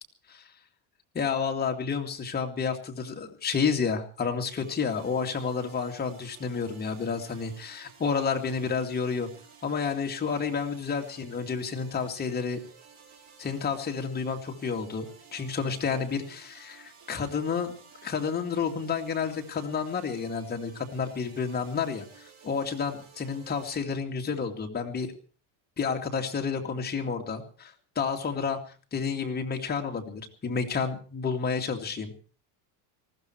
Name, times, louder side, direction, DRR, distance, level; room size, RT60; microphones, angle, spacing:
voice 1, 1.1-9.3 9.6-12.6 13.4-15.1 15.3-17.7 18.0-25.1 25.8-28.6 28.9-32.1, left 5 dB, 20° left, 2 dB, 2.4 m, -30 dB
sound 1, 4.6-23.8, right 6 dB, 40° right, 6.2 m, -54 dB
19.5 x 15.0 x 4.6 m, 0.40 s
cardioid pair, 135°, 43 cm